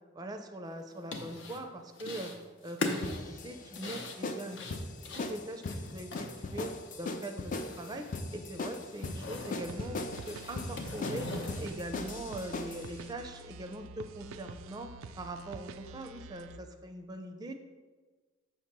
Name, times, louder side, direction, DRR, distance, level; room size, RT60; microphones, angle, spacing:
voice 1, 0.1-2.3 2.6-4.6 5.0-11.3 11.6-14.9 15.2-17.5, right 1 dB, 20° right, 5 dB, 0.4 m, -42 dB
sound 1, 0.8-1.6 2.0-2.4 2.6-6.9 7.2-8.2 8.5-9.6 10.1-11.7, left 2 dB, 65° left, 0.8 m, -40 dB
sound 2, 3.0-12.9, left 2 dB, 40° left, 0.4 m, -39 dB
sound 3, 9.7-16.6, right 4 dB, 85° right, 0.3 m, -48 dB
6.8 x 3.0 x 5.9 m, 1.3 s
head